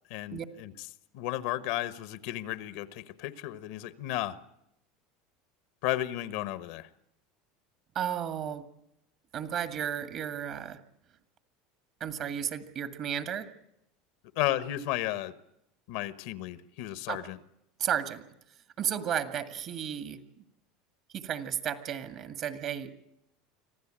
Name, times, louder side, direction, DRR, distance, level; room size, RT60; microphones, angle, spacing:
voice 1, 0.1-0.7 1.1-4.4 5.8-6.9 14.3-15.3 15.9-17.4, left 14 dB, 70° left, 15 dB, 1.2 m, -33 dB
voice 2, 7.9-8.7 9.3-10.8 12.0-13.5 17.1-17.3 17.8-18.2 18.8-20.2 21.1-22.9, right 9 dB, 50° right, 10 dB, 2.0 m, -33 dB
25.5 x 15.5 x 8.9 m, 0.82 s
supercardioid pair, 105°, 0 cm